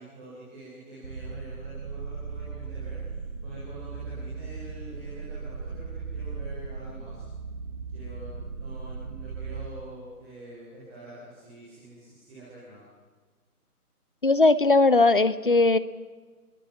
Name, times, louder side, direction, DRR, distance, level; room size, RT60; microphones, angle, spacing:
voice 1, 0.0-7.3 7.9-12.9, right 2 dB, 10° right, -7 dB, 4.0 m, -46 dB
sound 1, 1.0-9.7, right 5 dB, 30° right, 1.5 m, -37 dB
voice 2, 14.2-15.8, left 3 dB, 35° left, 15 dB, 0.9 m, -19 dB
28.5 x 23.5 x 6.0 m, 1.5 s
figure-of-eight pair, 155°, 46 cm